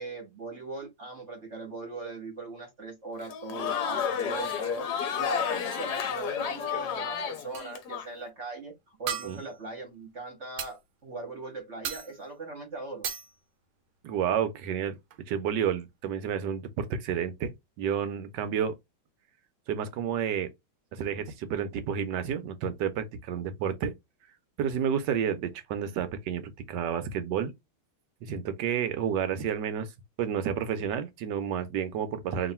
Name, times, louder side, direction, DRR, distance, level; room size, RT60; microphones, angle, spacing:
voice 1, 0.0-4.9 5.2-13.1, right 3 dB, 45° right, 1.0 m, -40 dB
Crowd, 3.2-8.1, left 7 dB, 65° left, 1.1 m, -31 dB
sound 1, 7.5-7.8 9.1-9.6 10.6-10.7 11.8-12.3 13.0-13.3 14.7-14.8 15.1-15.2, right 9 dB, 85° right, 1.5 m, -36 dB
voice 2, 14.0-15.0 15.3-18.7 19.7-20.5 20.9-23.9 24.6-27.5 28.2-29.9 30.2-32.5, right 8 dB, 70° right, 1.2 m, -30 dB
3.1 x 2.6 x 4.2 m
omnidirectional pair, 2.2 m